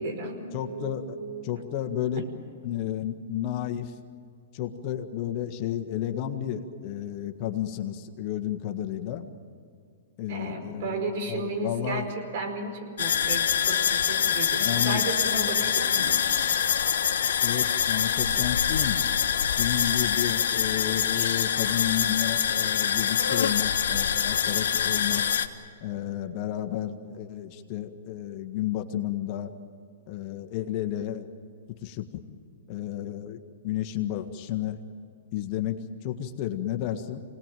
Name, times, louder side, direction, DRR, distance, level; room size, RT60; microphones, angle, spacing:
voice 1, 0.0-1.4 10.3-16.2, right 3 dB, 55° right, 4 dB, 4.8 m, -34 dB
voice 2, 0.5-1.2 1.4-2.2 2.6-3.9 4.5-9.3 10.2-12.1 14.6-15.0 17.4-19.0 19.5-25.2 25.8-29.5 30.1-31.3 31.8-32.1 32.7-34.8 35.3-37.2, left 11 dB, 40° left, 5 dB, 1.7 m, -32 dB
sound 1, 13.0-25.5, left 8 dB, 75° left, 1.4 m, -25 dB
26.0 x 19.0 x 9.2 m, 2.3 s
hypercardioid pair, 125°, 0 cm